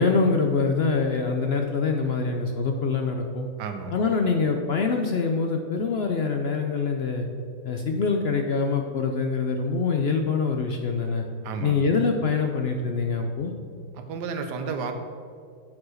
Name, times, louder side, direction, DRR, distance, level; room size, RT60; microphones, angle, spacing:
voice 1, 0.0-3.5 3.9-7.3 7.6-11.3 11.6-13.5, left 4 dB, 70° left, 3 dB, 0.6 m, -24 dB
voice 2, 3.6-3.9 11.4-11.8 13.9-14.9, right 5 dB, 80° right, 6 dB, 1.5 m, -32 dB
9.5 x 4.7 x 6.4 m, 2.2 s
omnidirectional pair, 1.8 m